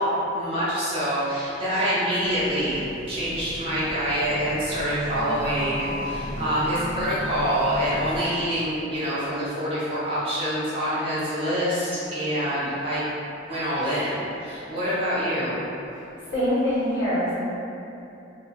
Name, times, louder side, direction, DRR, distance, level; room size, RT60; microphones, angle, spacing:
voice 1, 0.0-2.8 3.1-13.1 13.5-15.6, equal, 30° right, -11 dB, 1.0 m, -26 dB
sound 1, 2.2-8.3, equal, 75° left, 1.3 m, -35 dB
voice 2, 16.3-17.3, equal, 60° left, -12 dB, 1.4 m, -23 dB
3.0 x 2.5 x 4.1 m, 2.8 s
head